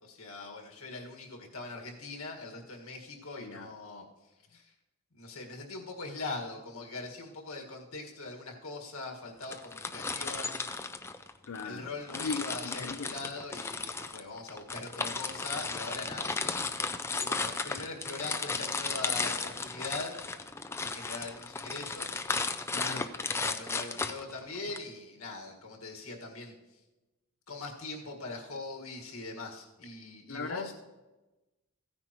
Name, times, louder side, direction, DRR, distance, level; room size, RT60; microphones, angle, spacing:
voice 1, 0.0-4.0 4.5-4.7 5.1-10.6 11.6-16.9 17.2-20.2 20.8-22.1 23.4-26.6 27.5-30.7, left 3 dB, 85° left, 1 dB, 1.8 m, -41 dB
voice 2, 3.4-3.7 11.4-13.2 22.7-23.1 30.3-30.7, left 4 dB, 70° left, 7 dB, 0.5 m, -39 dB
sound 1, 9.4-11.7 12.1-24.8, left 4 dB, 10° left, 0.4 m, -35 dB
15.5 x 9.6 x 3.0 m, 1.1 s
head